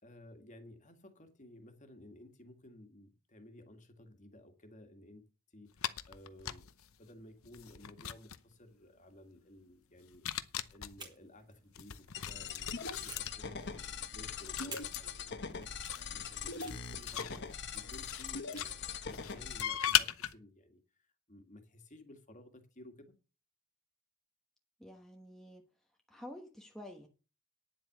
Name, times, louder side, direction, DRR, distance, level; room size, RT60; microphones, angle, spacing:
voice 1, 0.0-5.3 5.5-10.2 10.7-23.1, left 1 dB, 35° left, 1.9 m, -56 dB
sound 1, 5.8-6.9 7.4-8.5 10.1-11.0 11.7-15.0 15.8-18.3 18.5-20.3, left 11 dB, 70° left, 0.8 m, -38 dB
sound 2, 11.0-12.5 13.1-14.1 14.7-18.8, right 4 dB, 20° right, 2.2 m, -54 dB
sound 3, 12.1-19.6, left 5 dB, 50° left, 1.2 m, -42 dB
voice 2, 24.8-25.7 26.1-27.1, left 1 dB, ahead, 1.1 m, -49 dB
10.0 x 7.7 x 6.6 m
head